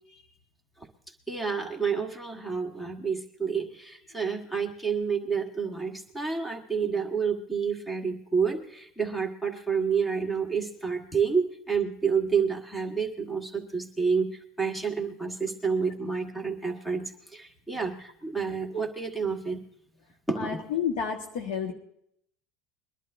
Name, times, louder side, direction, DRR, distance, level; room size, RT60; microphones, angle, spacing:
voice 1, 1.3-19.6 20.3-20.6, right 5 dB, 5° left, 3 dB, 1.6 m, -29 dB
voice 2, 20.4-21.7, left 7 dB, 80° left, 2 dB, 1.7 m, -30 dB
23.0 x 11.5 x 2.7 m, 0.70 s
supercardioid pair, 130°, 0 cm